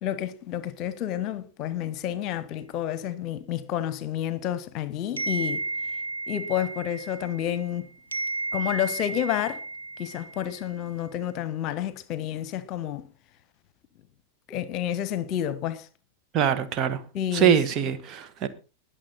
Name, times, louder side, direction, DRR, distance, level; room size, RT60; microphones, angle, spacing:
voice 1, 0.0-5.7 6.3-7.9 8.5-9.6 10.0-13.1 14.5-15.9 17.1-17.5, left 11 dB, 40° left, 1.2 m, -30 dB
sound 1, 5.2-7.8 8.1-10.7, right 3 dB, 80° right, 1.1 m, -33 dB
voice 2, 16.3-17.0 17.3-18.5, right 8 dB, 35° right, 1.6 m, -23 dB
20.5 x 7.0 x 4.2 m
figure-of-eight pair, 90°, 0 cm